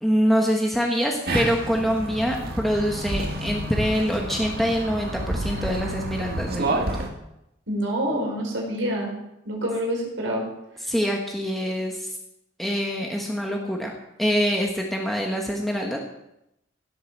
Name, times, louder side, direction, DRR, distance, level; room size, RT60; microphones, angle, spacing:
voice 1, 0.0-6.9 10.8-12.1 12.6-13.9 14.2-16.0, equal, ahead, 0 dB, 1.4 m, -25 dB
sound 1, 1.2-7.1, right 1 dB, 55° right, 2.1 m, -29 dB
voice 2, 7.7-9.1 9.5-10.4, equal, 85° right, -1 dB, 5.1 m, -26 dB
17.0 x 8.0 x 6.8 m, 0.84 s
head